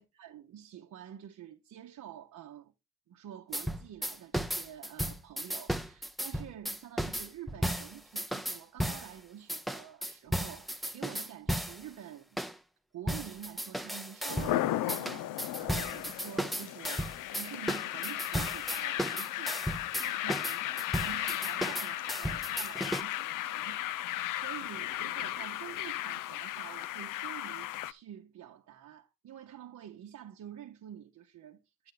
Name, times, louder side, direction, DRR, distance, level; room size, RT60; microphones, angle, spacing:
voice 1, 0.0-2.7 3.1-12.4 12.9-15.3 15.6-31.9, right 10 dB, 55° right, 0.9 m, -48 dB
sound 1, 3.5-9.1 9.5-11.8 12.4-12.5 13.1-14.6 14.9-23.0, equal, ahead, 0.7 m, -35 dB
sound 2, 14.3-27.9, left 14 dB, 65° left, 0.6 m, -35 dB
8.9 x 7.8 x 3.8 m
supercardioid pair, 70°, 34 cm